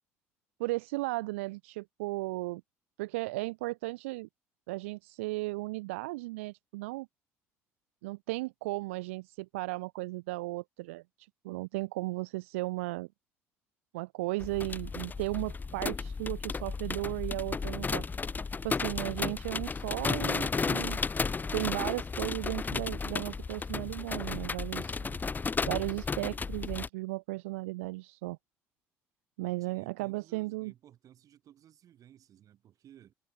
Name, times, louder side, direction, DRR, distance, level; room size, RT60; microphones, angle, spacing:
voice 1, 0.6-2.6 3.0-4.3 4.7-7.1 8.0-13.1 13.9-18.3 18.6-21.0 21.5-25.0 25.6-28.4 29.4-30.7, right 21 dB, 85° right, 1.2 m, -35 dB
sound 1, 14.4-26.9, left 4 dB, 25° left, 0.7 m, -34 dB
voice 2, 25.0-25.4 29.6-33.1, right 11 dB, 55° right, 5.3 m, -57 dB
hypercardioid pair, 60°, 7 cm